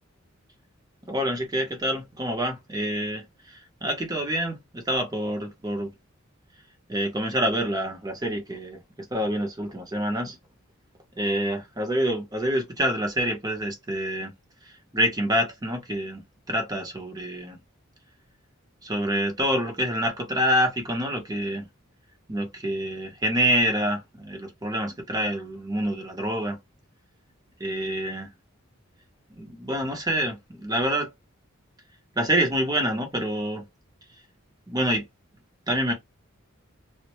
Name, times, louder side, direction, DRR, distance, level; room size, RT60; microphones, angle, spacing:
voice 1, 1.1-5.9 6.9-8.8 9.1-10.4 11.2-14.3 14.9-17.6 18.8-21.7 22.3-26.6 27.6-28.3 29.4-31.1 32.2-33.6 34.7-35.0 35.7-35.9, equal, 20° right, 0.7 m, -27 dB
2.1 x 2.1 x 2.9 m
head